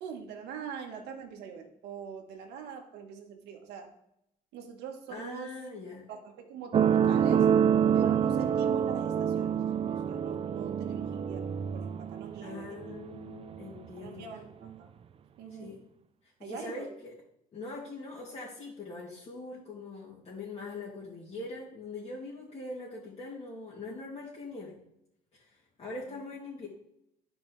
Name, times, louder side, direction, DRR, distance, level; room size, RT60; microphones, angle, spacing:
voice 1, 0.0-3.9 4.5-5.5 6.1-7.5 7.9-9.6 9.9-12.9 14.0-14.9 15.4-15.7 16.4-16.8, right 6 dB, 85° right, 2 dB, 1.5 m, -43 dB
voice 2, 5.1-6.1 12.4-14.3 15.6-15.8 16.4-17.1 17.5-24.7 25.3-26.7, left 2 dB, 40° left, -8 dB, 2.7 m, -42 dB
sound 1, 6.7-13.8 14.6-14.7, right 8 dB, 35° right, 0.4 m, -27 dB
12.0 x 5.2 x 3.3 m, 0.79 s
cardioid pair, 110°, 17 cm